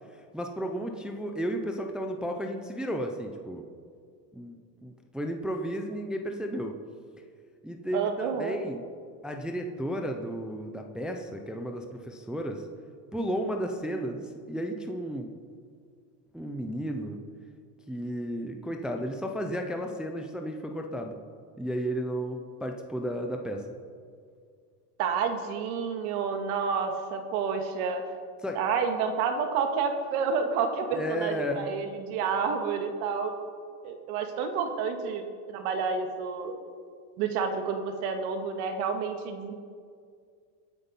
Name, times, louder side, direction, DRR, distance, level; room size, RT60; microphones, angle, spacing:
voice 1, 0.1-3.7 4.3-6.8 7.6-8.8 9.2-12.7 13.1-15.3 16.3-17.2 17.9-21.2 21.6-23.7 28.4-28.6 30.9-31.7, equal, ahead, 4 dB, 0.4 m, -33 dB
voice 2, 7.9-8.6 25.0-28.0 28.5-33.3 33.8-36.5 37.2-39.5, right 5 dB, 65° right, 5 dB, 1.9 m, -29 dB
23.0 x 8.3 x 5.4 m, 2.1 s
supercardioid pair, 150°, 47 cm